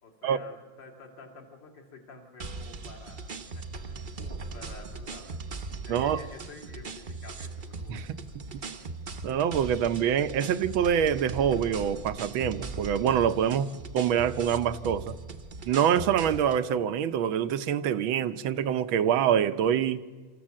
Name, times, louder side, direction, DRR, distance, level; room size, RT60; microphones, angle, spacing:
voice 1, 0.0-5.4 5.8-8.2, left 3 dB, 65° left, 3.2 m, -49 dB
sound 1, 2.4-16.6, right 3 dB, 40° right, 0.7 m, -39 dB
voice 2, 5.9-6.2 7.9-8.2 9.2-13.7 13.9-15.2 15.7-20.0, right 9 dB, 85° right, 1.6 m, -25 dB
26.5 x 14.0 x 7.5 m
omnidirectional pair, 2.1 m